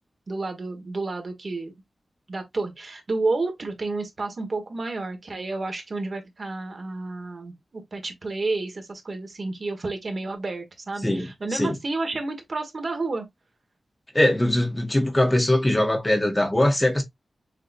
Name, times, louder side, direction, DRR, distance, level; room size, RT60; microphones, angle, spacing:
voice 1, 0.3-1.7 2.3-13.2, right 3 dB, 50° right, 1.4 m, -30 dB
voice 2, 11.0-11.8 14.1-17.0, left 1 dB, 15° left, 0.9 m, -21 dB
6.5 x 2.8 x 2.5 m
wide cardioid pair, 125°, 0 cm